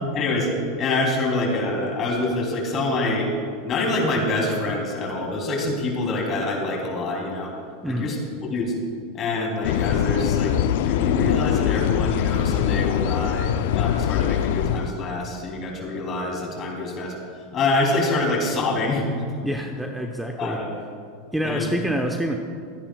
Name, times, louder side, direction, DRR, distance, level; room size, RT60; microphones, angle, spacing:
voice 1, 0.1-0.5 0.8-3.3 3.6-7.5 7.8-8.2 8.5-8.7 9.1-17.2 17.5-19.3 20.4-20.7 21.4-21.7, left 2 dB, 35° left, 0 dB, 3.2 m, -26 dB
sound 1, 9.6-14.9, left 10 dB, 65° left, 0.4 m, -22 dB
voice 2, 19.4-20.6 21.3-22.4, right 1 dB, 5° right, 3 dB, 0.9 m, -27 dB
25.5 x 9.8 x 2.3 m, 2.3 s
hypercardioid pair, 90°, 0 cm